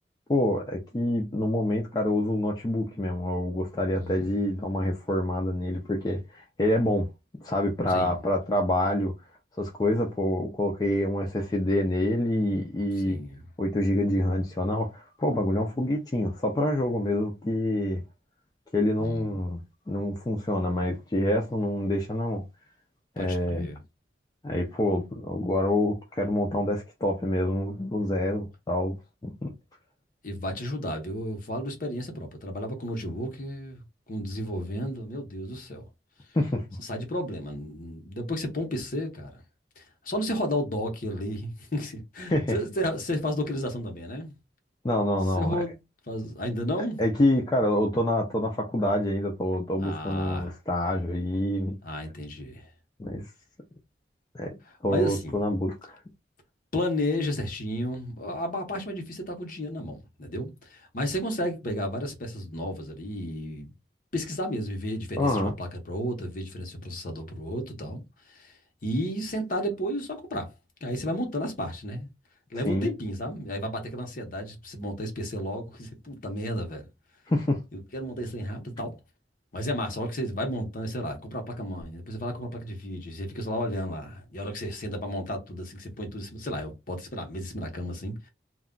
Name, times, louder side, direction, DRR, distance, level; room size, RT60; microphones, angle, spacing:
voice 1, 0.3-7.1 7.4-9.1 9.6-13.2 13.6-18.0 18.7-19.6 19.9-22.4 23.2-23.7 24.4-29.0 29.2-29.5 36.3-36.6 42.3-42.6 44.8-45.6 47.0-51.8 53.0-53.3 54.3-56.0 65.2-65.5 72.6-72.9 77.3-77.6, left 1 dB, 20° left, 0.4 m, -27 dB
voice 2, 3.9-4.4 7.9-8.2 13.0-13.4 19.0-19.5 23.2-23.8 30.2-33.8 34.1-35.9 36.8-39.4 39.8-44.4 45.4-45.8 46.1-47.0 49.8-50.5 51.8-52.7 54.9-55.3 56.7-63.7 64.1-68.0 68.3-68.5 68.8-70.5 70.8-72.1 72.5-76.9 77.7-79.0 79.5-88.3, equal, 50° left, 0.8 m, -32 dB
2.3 x 2.2 x 3.7 m
head